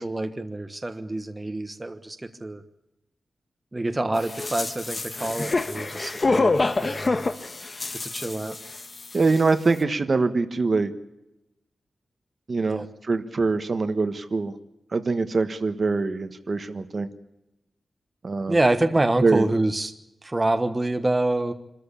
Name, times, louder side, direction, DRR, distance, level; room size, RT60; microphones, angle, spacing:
voice 1, 0.0-2.6 3.7-7.3 8.1-8.6 12.7-12.9 18.5-19.9 20.2-21.5, right 2 dB, 20° right, 8 dB, 1.3 m, -26 dB
sound 1, 4.2-9.0 9.3-9.4, left 3 dB, 35° left, 1.3 m, -26 dB
voice 2, 9.1-10.9 12.5-14.5 14.9-17.1 18.2-18.6 19.2-19.5, right 3 dB, 40° right, 9 dB, 1.3 m, -23 dB
26.5 x 13.5 x 8.5 m, 0.90 s
wide cardioid pair, 140°, 0 cm